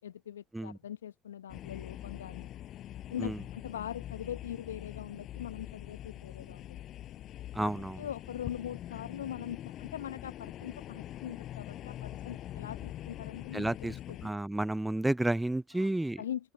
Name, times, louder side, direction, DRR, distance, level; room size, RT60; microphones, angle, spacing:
voice 1, 0.0-2.5 3.1-6.8 7.6-7.7 8.0-13.7 14.1-14.2 15.8-15.9 16.2-16.5, left 10 dB, 80° left, 1.0 m, -41 dB
sound 1, 1.5-14.3, left 12 dB, 50° left, 6.0 m, -44 dB
voice 2, 7.5-8.0 13.5-16.2, right 1 dB, 10° right, 0.5 m, -31 dB
open air
figure-of-eight pair, 60°, 0 cm